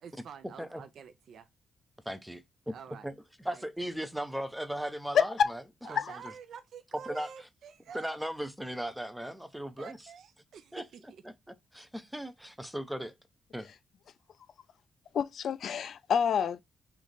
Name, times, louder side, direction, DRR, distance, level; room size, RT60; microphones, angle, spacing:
voice 1, 0.0-1.5 2.7-3.1 3.5-3.6 5.8-8.2 9.8-11.2, right 7 dB, 60° right, 0.5 m, -48 dB
voice 2, 2.1-2.7 3.0-3.1 3.4-5.6 5.9-6.0 7.1-7.3 7.9-10.0 10.7-10.8 11.2-11.3 11.7-13.1 13.5-13.7, equal, 5° right, 0.5 m, -37 dB
voice 3, 5.1-5.5 6.0-6.1 15.1-16.6, left 7 dB, 55° left, 0.3 m, -27 dB
3.2 x 3.1 x 3.9 m
wide cardioid pair, 165°, 0 cm